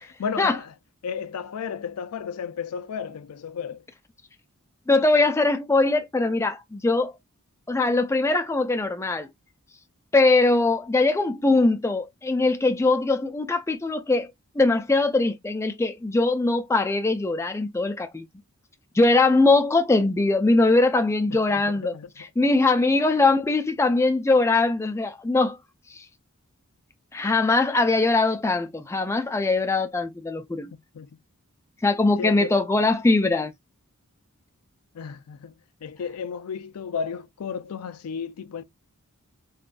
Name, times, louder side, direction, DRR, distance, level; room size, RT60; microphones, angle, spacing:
voice 1, 0.0-0.7 1.0-3.8 21.3-22.1 30.9-31.2 32.2-32.6 34.9-35.6 35.8-38.6, left 6 dB, 80° left, 0.4 m, -33 dB
voice 2, 4.9-7.1 7.7-9.3 10.1-14.3 14.6-18.3 18.9-22.0 22.4-25.6 25.9-26.0 27.1-30.7 31.8-33.5, left 3 dB, 10° left, 0.3 m, -21 dB
3.6 x 2.4 x 2.4 m
head